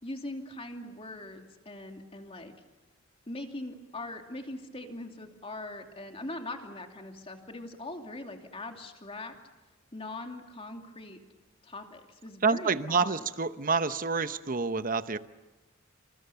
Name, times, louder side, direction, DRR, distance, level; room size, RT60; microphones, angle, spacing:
voice 1, 0.0-2.5 3.3-9.3 9.9-11.2 11.6-13.2, left 2 dB, 30° left, 4 dB, 2.7 m, -41 dB
voice 2, 12.4-15.2, right 4 dB, 40° right, 12 dB, 0.9 m, -28 dB
27.5 x 27.5 x 7.0 m, 1.2 s
head